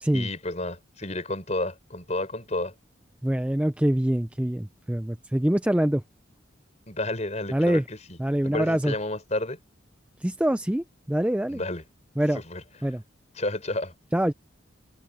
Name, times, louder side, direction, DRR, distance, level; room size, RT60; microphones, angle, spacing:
voice 1, 0.1-2.7 6.9-8.2 8.4-9.6 11.5-11.8 12.3-12.6 13.4-13.9, left 2 dB, 35° left, 5.3 m, -31 dB
voice 2, 3.2-6.0 7.5-7.8 8.2-8.9 10.2-11.6 12.2-12.4 12.8-13.0 14.1-14.3, right 1 dB, 5° right, 0.4 m, -24 dB
head